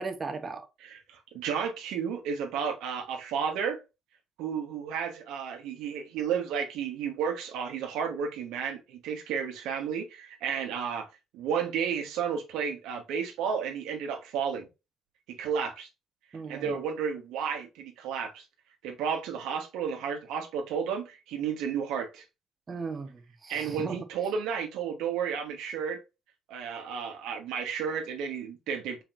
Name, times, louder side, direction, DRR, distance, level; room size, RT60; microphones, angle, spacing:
voice 1, 0.0-0.7 16.3-16.8 22.7-24.0, right 4 dB, 35° right, 0.8 m, -37 dB
voice 2, 0.8-3.8 4.4-11.1 11.3-14.7 15.3-15.9 16.5-18.4 18.8-22.2 23.5-26.0 26.5-29.0, right 7 dB, 85° right, 1.1 m, -32 dB
4.5 x 4.4 x 2.5 m
cardioid pair, 85°, 0 cm